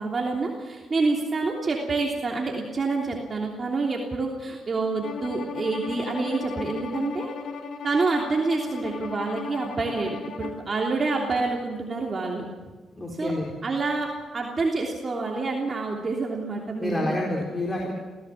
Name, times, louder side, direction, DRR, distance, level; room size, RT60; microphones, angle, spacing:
voice 1, 0.0-7.3 7.8-12.4 13.1-13.3 13.6-17.1, right 3 dB, 35° right, -1 dB, 3.2 m, -27 dB
Bowed string instrument, 5.0-10.6, left 6 dB, 65° left, 2.1 m, -36 dB
voice 2, 12.9-13.5 16.8-17.9, left 1 dB, 20° left, -1 dB, 4.1 m, -28 dB
25.0 x 16.5 x 7.4 m, 1.3 s
cardioid pair, 80°, 0 cm